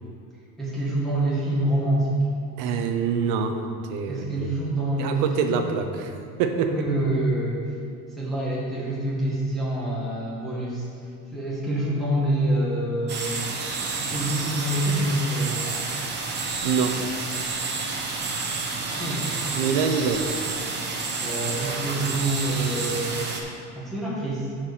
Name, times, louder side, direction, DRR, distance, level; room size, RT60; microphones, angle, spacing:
voice 1, 0.6-2.2 4.1-5.7 6.7-7.6 8.1-10.8 11.3-13.4 14.0-15.6 19.0-19.3 21.2-23.2 23.7-24.5, right 1 dB, ahead, -9 dB, 1.7 m, -26 dB
voice 2, 2.6-3.6 3.9-4.3 5.0-6.1 6.4-6.7 16.6-17.0 19.5-20.3, right 6 dB, 85° right, 6 dB, 0.9 m, -25 dB
sound 1, 13.1-23.4, right 4 dB, 35° right, 1.1 m, -30 dB
12.0 x 4.8 x 4.2 m, 2.4 s
cardioid pair, 145°, 31 cm